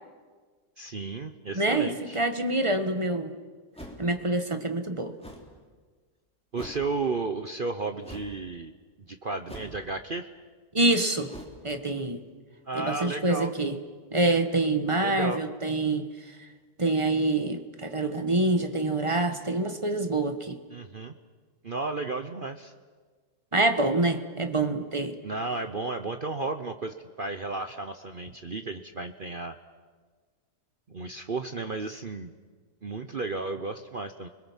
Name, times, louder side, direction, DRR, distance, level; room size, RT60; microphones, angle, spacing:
voice 1, 0.8-2.2 6.5-8.7 9.1-10.3 12.7-13.5 15.0-15.4 20.7-21.1 21.6-22.7 25.2-29.6 30.9-32.3 32.8-34.3, right 3 dB, 40° right, 8 dB, 0.8 m, -33 dB
voice 2, 1.5-3.3 4.0-5.1 10.7-11.3 11.6-12.2 12.7-13.8 14.1-16.1 16.8-20.6 23.5-25.2, right 2 dB, 20° right, 7 dB, 1.3 m, -26 dB
sound 1, 3.7-4.2 5.2-5.5 6.5-6.9 8.0-8.4 9.5-9.9 11.2-11.6, equal, 5° left, 3.3 m, -43 dB
29.5 x 21.5 x 7.3 m, 1.5 s
omnidirectional pair, 1.7 m